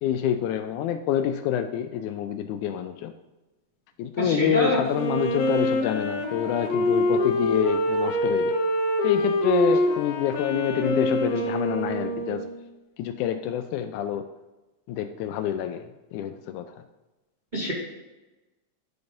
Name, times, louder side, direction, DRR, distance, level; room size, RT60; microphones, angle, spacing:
voice 1, 0.0-3.1 4.0-8.5 9.0-12.4 13.0-14.2 14.9-15.9 16.1-16.8, left 10 dB, 85° left, 8 dB, 1.8 m, -27 dB
voice 2, 4.2-4.8 17.5-17.7, equal, 80° right, -6 dB, 0.4 m, -24 dB
Wind instrument woodwind instrument, 4.9-12.6, equal, 65° left, 1.6 m, -25 dB
10.5 x 4.0 x 5.2 m, 1.1 s
omnidirectional pair, 3.9 m